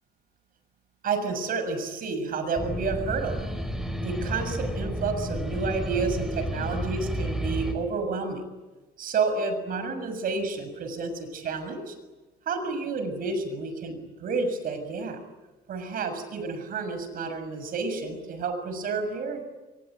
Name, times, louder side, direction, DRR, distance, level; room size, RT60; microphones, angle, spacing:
voice 1, 1.0-3.4 4.0-8.4 9.0-12.0 12.5-15.2 15.7-19.4, right 4 dB, 60° right, 9 dB, 6.9 m, -30 dB
sound 1, 2.5-7.7, equal, 5° right, 4.5 m, -31 dB
27.5 x 23.0 x 9.4 m, 1.1 s
cardioid pair, 110°, 17 cm